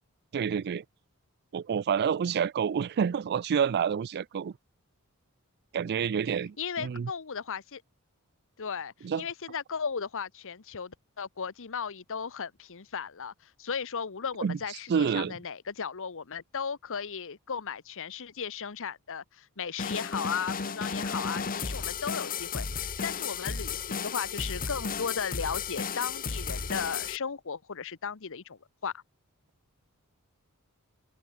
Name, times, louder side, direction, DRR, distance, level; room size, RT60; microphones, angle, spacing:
voice 1, 0.3-0.8 1.5-4.5 5.7-7.1 9.0-9.3 14.4-14.6 14.9-15.4, right 7 dB, 50° right, 0.4 m, -28 dB
voice 2, 6.6-7.8 8.6-29.0, left 6 dB, 65° left, 1.0 m, -36 dB
sound 1, 19.8-27.2, left 5 dB, 40° left, 1.1 m, -34 dB
head